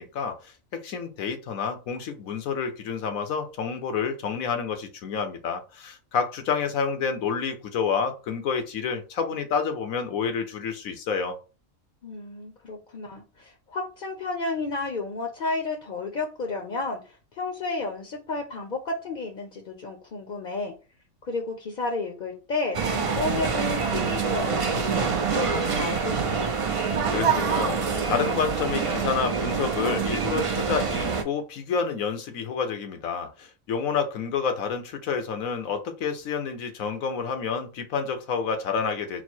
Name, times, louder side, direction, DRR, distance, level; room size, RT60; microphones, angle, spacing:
voice 1, 0.0-11.4 27.1-27.8 28.1-39.2, left 6 dB, 90° left, 1.2 m, -29 dB
voice 2, 12.0-20.7 21.3-26.5, left 3 dB, 50° left, 0.7 m, -32 dB
sound 1, 22.7-31.2, right 5 dB, 60° right, 0.3 m, -26 dB
4.2 x 2.0 x 4.4 m
omnidirectional pair, 1.4 m